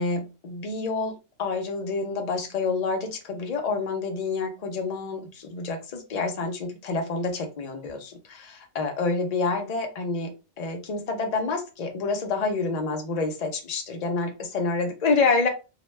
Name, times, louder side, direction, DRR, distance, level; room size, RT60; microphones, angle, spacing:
voice 1, 0.0-10.3 10.6-15.5, left 4 dB, 70° left, 3 dB, 0.3 m, -28 dB
2.3 x 2.1 x 3.1 m, 0.30 s
omnidirectional pair, 1.4 m